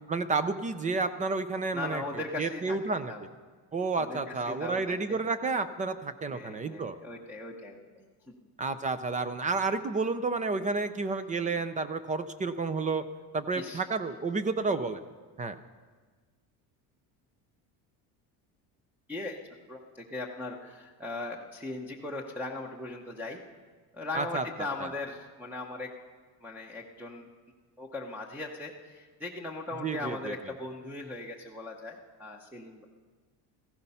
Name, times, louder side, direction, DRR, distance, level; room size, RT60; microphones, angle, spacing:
voice 1, 0.1-2.0 2.4-3.1 3.7-7.0 8.6-13.0 13.3-15.0 15.4-15.6 24.1-24.4 24.8-24.9 29.8-30.3, right 4 dB, 20° right, 13 dB, 0.5 m, -30 dB
voice 2, 1.7-3.2 4.0-5.2 6.3-8.4 13.5-13.8 19.1-19.4 19.7-23.4 23.9-25.9 26.4-27.3 27.8-32.8, left 2 dB, 5° right, -4 dB, 0.9 m, -39 dB
16.5 x 15.0 x 5.6 m, 1.5 s
cardioid pair, 150°, 38 cm